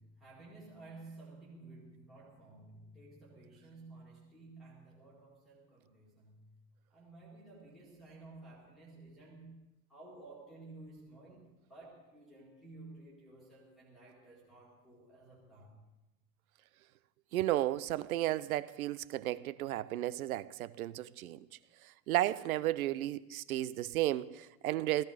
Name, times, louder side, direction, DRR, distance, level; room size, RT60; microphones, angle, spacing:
voice 1, 0.0-6.6 6.9-15.8, right 2 dB, ahead, 2.1 m, -54 dB
voice 2, 17.3-21.5 21.8-25.0, right 14 dB, 65° right, 0.7 m, -33 dB
17.0 x 15.0 x 5.0 m
supercardioid pair, 180°, 47 cm